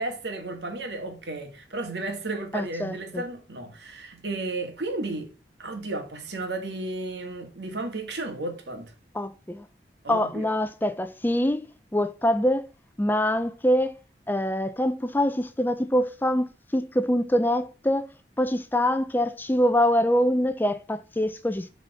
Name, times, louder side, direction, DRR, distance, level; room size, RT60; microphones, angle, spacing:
voice 1, 0.0-5.3 5.6-8.9 10.0-10.5, right 2 dB, 75° right, 2.0 m, -33 dB
voice 2, 2.5-3.2 9.1-9.7 10.1-11.7 11.9-12.7 13.0-14.0 14.3-18.1 18.4-21.7, equal, 10° left, 0.4 m, -24 dB
8.1 x 4.2 x 5.4 m
head